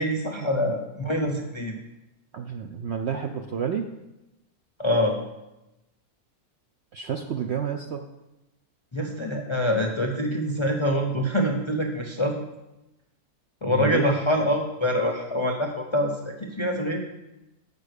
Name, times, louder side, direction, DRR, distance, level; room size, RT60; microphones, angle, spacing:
voice 1, 0.0-1.7 4.8-5.2 8.9-12.4 13.6-17.0, equal, 30° left, 2 dB, 0.5 m, -25 dB
voice 2, 2.3-3.9 6.9-8.0 13.7-14.1, right 7 dB, 65° right, 5 dB, 0.6 m, -30 dB
8.1 x 5.3 x 6.5 m, 0.96 s
omnidirectional pair, 1.6 m